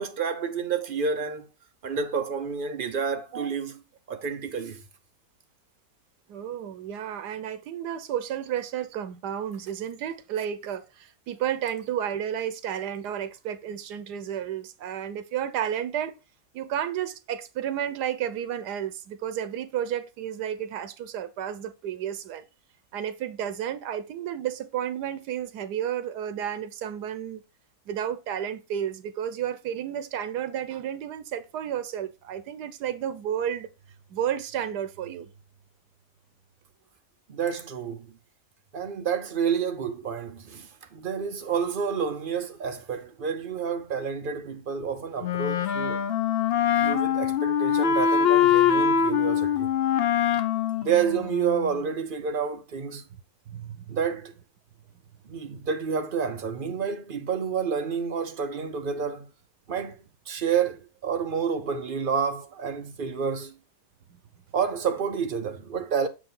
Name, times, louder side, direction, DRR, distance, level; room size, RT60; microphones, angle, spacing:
voice 1, 0.0-1.5 1.8-3.8 4.1-4.8 37.3-38.1 38.7-46.1 46.8-49.7 50.8-53.0 53.9-54.3 55.3-59.3 59.7-63.6 64.5-66.1, right 6 dB, 55° right, 0.6 m, -29 dB
voice 2, 6.3-16.2 16.5-22.4 22.9-27.4 27.9-33.7 34.1-35.3 53.5-54.0, right 9 dB, 90° right, 1.3 m, -32 dB
Wind instrument woodwind instrument, 45.2-51.8, left 8 dB, 70° left, 0.5 m, -23 dB
6.8 x 4.9 x 3.8 m
omnidirectional pair, 1.7 m